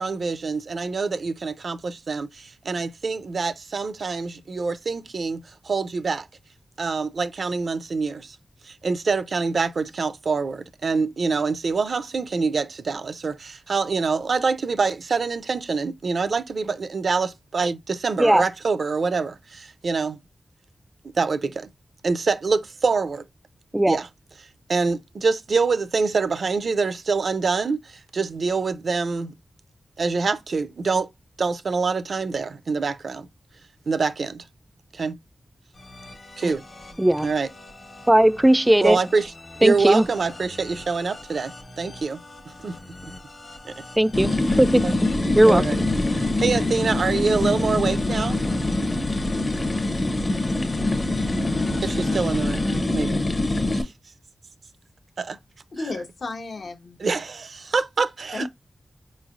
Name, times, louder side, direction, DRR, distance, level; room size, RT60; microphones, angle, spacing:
voice 1, 0.0-6.3 6.8-8.4 8.7-20.2 21.2-21.7 22.0-23.2 23.9-24.1 24.7-29.3 30.0-31.1 31.4-33.3 33.9-34.4 34.9-35.2 36.4-36.6 37.2-37.5 38.8-39.3 39.6-42.2 42.5-42.8 43.0-43.1 43.6-43.8 44.4-44.9 45.5-45.8 46.1-48.4 49.4-49.5 51.8-52.7 52.9-53.2 53.7-53.9 55.2-55.4 57.0-58.5, right 4 dB, 75° right, 0.5 m, -25 dB
sound 1, 35.7-52.8, left 2 dB, 60° left, 1.2 m, -43 dB
voice 2, 38.1-39.0 39.6-40.1 44.0-44.3 44.6-45.1 45.4-45.8, right 1 dB, 15° right, 0.3 m, -17 dB
sound 2, 44.1-53.8, left 2 dB, 40° left, 0.7 m, -24 dB
voice 3, 55.7-57.0 58.3-58.5, left 3 dB, 75° left, 0.8 m, -33 dB
4.4 x 3.1 x 2.4 m
wide cardioid pair, 65°, 0 cm